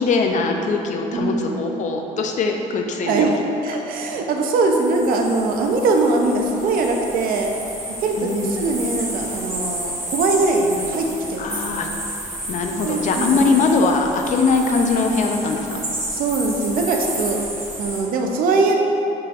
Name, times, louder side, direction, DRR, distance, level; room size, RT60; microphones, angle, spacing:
voice 1, 0.0-3.3 8.2-8.6 11.4-11.9 12.5-15.8, left 4 dB, 55° left, 3 dB, 0.5 m, -21 dB
voice 2, 1.1-1.5 3.0-7.5 8.0-11.9 12.8-13.5 16.1-17.4 17.8-18.8, right 3 dB, 70° right, 2 dB, 0.6 m, -21 dB
sound 1, 4.6-18.0, right 1 dB, 20° right, 1.4 m, -31 dB
5.6 x 3.9 x 2.4 m, 2.9 s
cardioid pair, 90°, 15 cm